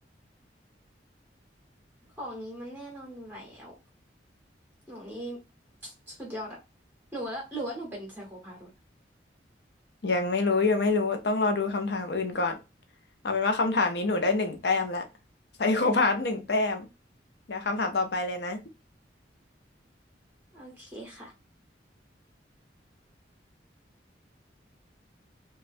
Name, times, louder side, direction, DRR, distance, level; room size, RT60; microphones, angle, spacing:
voice 1, 2.2-3.7 4.9-5.4 5.8-6.6 7.1-8.7 20.5-21.3, right 1 dB, 10° right, 0.8 m, -39 dB
voice 2, 10.0-12.6 13.2-15.1 15.6-16.9 17.5-18.6, left 3 dB, 65° left, 0.6 m, -26 dB
3.1 x 2.3 x 2.5 m
head